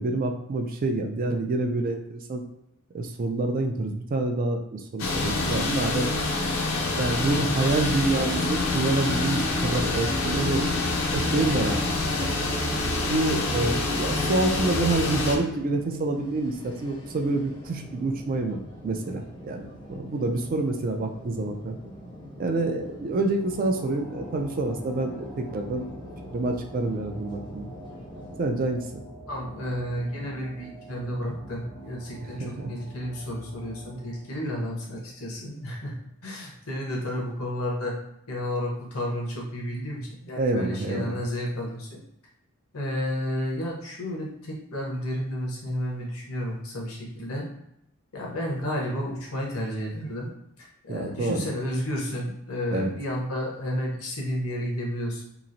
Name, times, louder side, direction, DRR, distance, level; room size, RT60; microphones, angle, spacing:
voice 1, 0.0-2.4 2.9-6.1 7.0-10.7 11.1-11.8 12.2-12.3 13.1-21.8 22.4-25.9 26.3-27.7 28.4-29.0 32.4-32.7 40.4-41.2 50.9-51.5 52.7-52.9, right 2 dB, 40° right, 3 dB, 0.3 m, -27 dB
sound 1, 5.0-15.4, left 2 dB, 70° left, 0.5 m, -26 dB
sound 2, 10.9-28.4, equal, 20° left, 0.5 m, -44 dB
sound 3, 23.2-35.8, right 1 dB, 85° right, 1.0 m, -45 dB
voice 2, 29.3-36.0 36.2-37.9 38.3-42.0 42.7-47.5 48.1-50.3 50.6-55.2, equal, 90° left, -1 dB, 0.9 m, -31 dB
2.9 x 2.4 x 2.6 m, 0.77 s
head